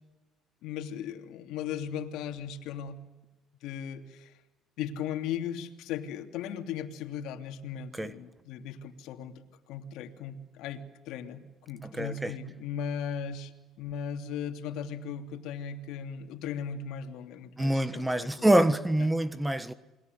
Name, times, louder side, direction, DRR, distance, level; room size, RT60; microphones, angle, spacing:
voice 1, 0.6-3.0 3.6-4.3 4.8-9.3 9.7-13.5 13.8-18.3 18.6-18.7, left 8 dB, 75° left, 3.0 m, -37 dB
voice 2, 11.8-12.3 17.6-19.7, right 1 dB, 10° right, 1.3 m, -26 dB
28.5 x 22.0 x 9.6 m
cardioid pair, 110°, 0 cm